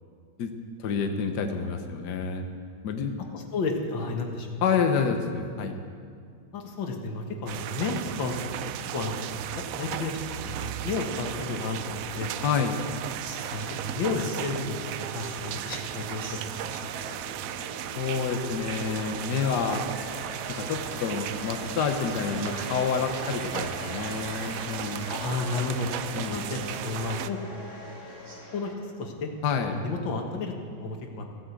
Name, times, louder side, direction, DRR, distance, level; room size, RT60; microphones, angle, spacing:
voice 1, 0.8-2.5 2.8-3.2 4.6-5.7 12.4-12.8 18.0-19.8 20.5-25.1 26.1-26.4 29.4-29.7, left 6 dB, 65° left, 5 dB, 1.5 m, -28 dB
voice 2, 3.3-4.5 6.5-8.4 8.9-9.2 9.6-12.4 13.5-14.8 15.1-17.2 25.1-25.9 26.3-27.4 28.5-28.7 29.0-29.3 29.7-31.3, left 3 dB, 90° left, 3 dB, 2.2 m, -32 dB
sound 1, 7.5-27.3, right 11 dB, 90° right, 0.7 m, -36 dB
sound 2, 10.7-28.7, left 1 dB, 50° left, 3.9 m, -45 dB
sound 3, 12.4-28.4, right 1 dB, 60° right, 2.7 m, -45 dB
16.0 x 9.9 x 8.2 m, 2.2 s
omnidirectional pair, 2.0 m